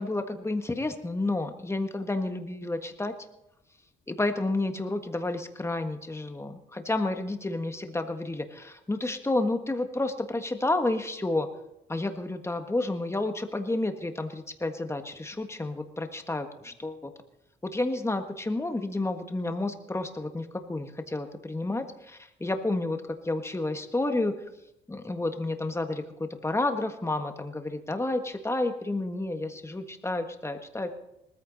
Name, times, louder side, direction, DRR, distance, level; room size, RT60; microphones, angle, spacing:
voice 1, 0.0-3.1 4.1-11.5 11.9-17.1 17.6-23.0 23.2-24.3 24.9-30.9, left 2 dB, 15° left, 6 dB, 1.6 m, -30 dB
20.0 x 14.5 x 4.1 m, 0.87 s
cardioid pair, 90°, 20 cm